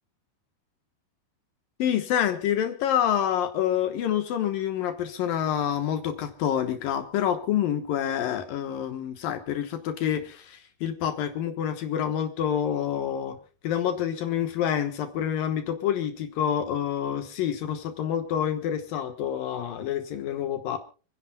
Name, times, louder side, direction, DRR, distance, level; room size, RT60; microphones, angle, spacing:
voice 1, 1.8-13.4 13.6-20.8, left 9 dB, 70° left, 8 dB, 2.8 m, -27 dB
29.5 x 10.5 x 2.2 m, 0.36 s
omnidirectional pair, 4.3 m